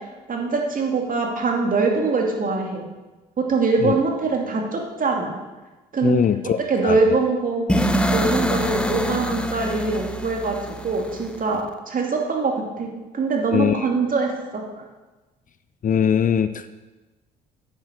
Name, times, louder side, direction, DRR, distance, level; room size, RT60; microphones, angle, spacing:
voice 1, 0.3-2.9 3.4-5.3 5.9-6.2 6.7-7.7 8.1-10.6 10.8-14.8, right 4 dB, 40° right, 1 dB, 2.6 m, -23 dB
voice 2, 6.0-6.6 6.8-7.0 13.5-13.9 15.8-16.7, left 8 dB, 40° left, 12 dB, 0.6 m, -21 dB
sound 1, 7.7-11.6, equal, 5° left, 1.0 m, -24 dB
10.0 x 8.3 x 6.3 m, 1.2 s
hypercardioid pair, 55°, 21 cm